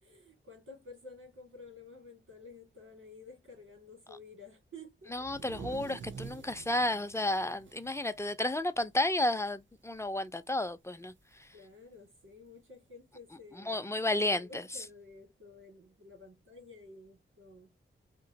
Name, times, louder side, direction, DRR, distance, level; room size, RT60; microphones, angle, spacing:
voice 1, 0.0-5.6 11.5-17.7, left 2 dB, 85° right, 1.7 m, -52 dB
voice 2, 5.1-11.1 13.5-14.6, left 1 dB, 15° left, 0.4 m, -32 dB
sound 1, 5.2-8.9 9.2-9.4 9.7-10.2 11.3-11.4 12.5-12.6, right 5 dB, 65° right, 0.6 m, -48 dB
2.9 x 2.8 x 2.7 m
wide cardioid pair, 70°, 21 cm